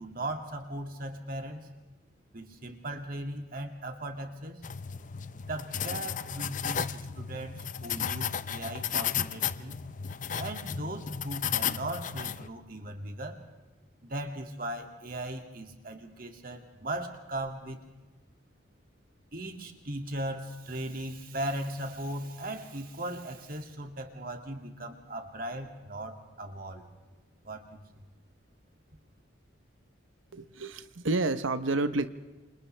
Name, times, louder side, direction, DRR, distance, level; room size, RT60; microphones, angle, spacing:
voice 1, 0.0-1.7 2.3-4.6 5.3-9.8 10.3-13.4 14.0-17.8 19.3-26.8 27.4-27.8, right 1 dB, 45° right, 4 dB, 2.3 m, -38 dB
sound 1, 4.6-12.5, left 8 dB, 40° left, 0.6 m, -34 dB
voice 2, 30.3-32.1, right 2 dB, 80° right, 11 dB, 0.9 m, -29 dB
28.5 x 27.5 x 3.4 m, 1.2 s
head